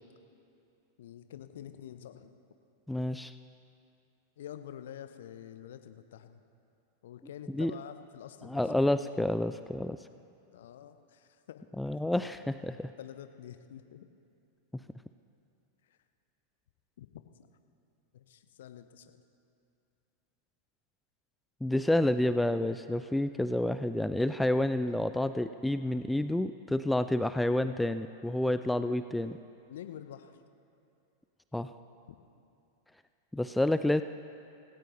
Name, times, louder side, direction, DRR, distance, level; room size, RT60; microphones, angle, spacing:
voice 1, 1.0-2.4 4.4-6.4 7.0-8.8 10.5-12.3 13.0-14.1 15.9-16.0 17.0-17.1 17.3-17.5 18.1-19.2 29.7-30.4 32.1-32.2, left 10 dB, 60° left, 9 dB, 0.7 m, -47 dB
voice 2, 2.9-3.3 7.5-7.7 8.5-10.0 11.8-12.9 21.6-29.4 31.5-31.7 33.3-34.0, left 1 dB, 5° left, 11 dB, 0.3 m, -29 dB
17.5 x 17.0 x 3.1 m, 2.6 s
figure-of-eight pair, 90°, 0 cm